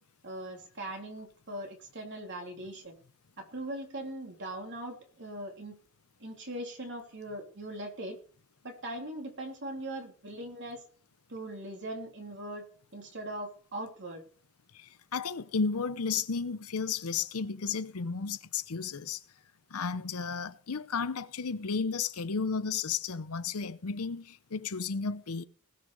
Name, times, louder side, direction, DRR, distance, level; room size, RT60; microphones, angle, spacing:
voice 1, 0.2-3.0 3.4-5.8 6.2-8.2 8.6-10.8 11.3-12.6 12.9-14.2, right 1 dB, 55° right, 3.3 m, -40 dB
voice 2, 14.7-19.2 19.7-25.4, left 5 dB, 80° left, 0.8 m, -33 dB
20.0 x 6.6 x 4.9 m
head